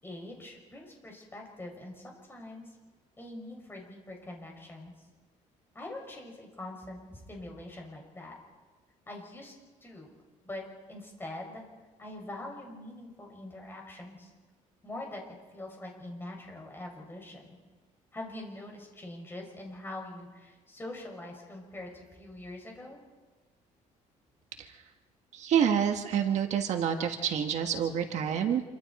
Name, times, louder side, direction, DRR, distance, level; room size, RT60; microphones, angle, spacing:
voice 1, 0.0-2.8 3.2-4.9 5.7-8.3 9.1-9.5 9.8-10.1 10.4-11.6 12.0-14.3 14.8-17.6 18.1-23.0, left 1 dB, 15° left, 0 dB, 5.8 m, -43 dB
voice 2, 25.3-28.6, right 8 dB, 60° right, 5 dB, 1.5 m, -28 dB
27.5 x 24.5 x 4.2 m, 1.3 s
cardioid pair, 145°, 14 cm